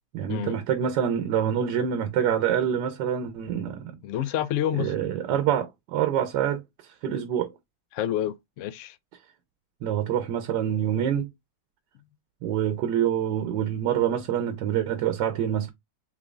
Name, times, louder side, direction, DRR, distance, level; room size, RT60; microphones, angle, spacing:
voice 1, 0.1-4.0 4.8-6.6 7.0-7.5 9.8-11.3 12.4-15.7, right 9 dB, 75° right, 1.3 m, -26 dB
voice 2, 4.0-4.9 7.9-9.0, left 11 dB, 90° left, 0.6 m, -28 dB
5.9 x 3.0 x 2.4 m
omnidirectional pair, 1.9 m